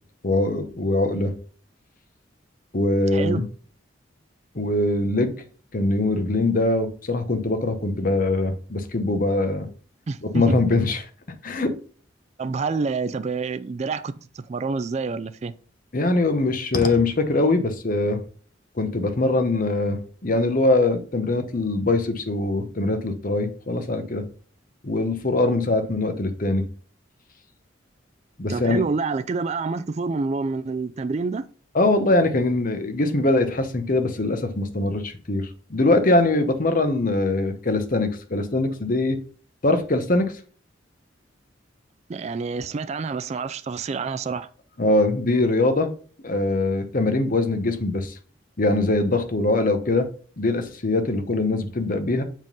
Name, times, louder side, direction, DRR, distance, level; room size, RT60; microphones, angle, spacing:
voice 1, 0.2-1.3 2.7-3.4 4.5-5.3 5.7-9.7 10.3-11.0 11.4-11.7 15.9-18.2 18.8-24.2 24.8-26.6 28.4-28.8 31.7-39.2 39.6-40.3 44.8-45.9 46.2-48.2 48.6-50.1 50.4-52.2, left 2 dB, 45° left, 0.9 m, -22 dB
voice 2, 3.1-3.4 10.1-10.6 12.4-15.5 28.5-31.5 42.1-44.5, right 4 dB, 35° right, 0.3 m, -28 dB
7.4 x 3.7 x 5.4 m
head